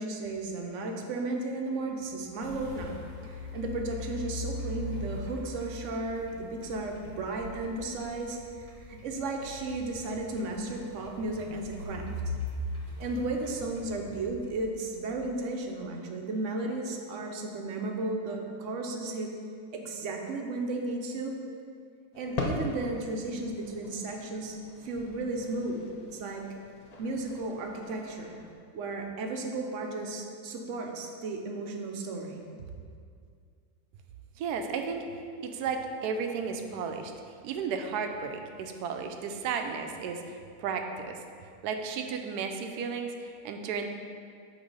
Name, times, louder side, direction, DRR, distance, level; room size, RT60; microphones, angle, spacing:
voice 1, 0.0-3.0 3.2-12.3 13.0-19.3 19.7-21.3 22.1-26.4 27.0-28.4 28.7-32.7, right 2 dB, 60° right, 2 dB, 0.9 m, -34 dB
sound 1, 2.4-15.2, left 2 dB, 20° right, 0.9 m, -40 dB
sound 2, 22.1-28.5, left 2 dB, 90° left, 0.3 m, -40 dB
voice 2, 34.4-35.1 35.4-37.1 37.4-41.2 41.6-43.9, right 5 dB, 80° right, 5 dB, 1.1 m, -34 dB
8.0 x 3.2 x 5.3 m, 2.2 s
omnidirectional pair, 1.7 m